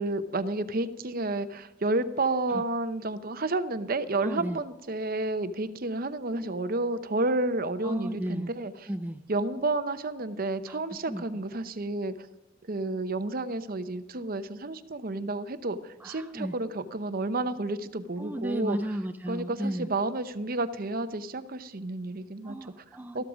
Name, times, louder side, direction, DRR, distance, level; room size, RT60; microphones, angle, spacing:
voice 1, 0.0-8.9 9.3-12.1 12.7-18.8 19.3-22.6 23.1-23.2, right 2 dB, 45° right, 11 dB, 0.8 m, -31 dB
voice 2, 4.2-4.6 7.8-8.5 8.9-9.2 10.7-10.8 11.1-11.2 16.0-16.6 18.2-19.9 22.4-23.2, right 1 dB, 10° right, 6 dB, 0.4 m, -34 dB
13.5 x 12.5 x 5.1 m, 0.97 s
head